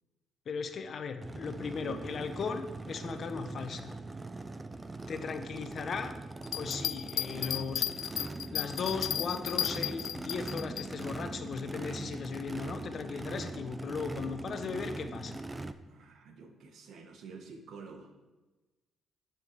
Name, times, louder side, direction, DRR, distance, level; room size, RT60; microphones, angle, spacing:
voice 1, 0.5-3.9 5.1-6.2 6.5-15.4, left 5 dB, 55° left, 7 dB, 1.1 m, -37 dB
Race car auto racing / Idling / Accelerating revving vroom, 1.2-15.7, right 2 dB, 20° right, 0.6 m, -41 dB
sound 1, 6.4-10.9, left 11 dB, 75° left, 0.4 m, -34 dB
voice 2, 15.9-18.3, right 4 dB, 70° right, 6 dB, 1.5 m, -49 dB
10.0 x 6.3 x 6.7 m, 1.1 s
cardioid pair, 90°, 0 cm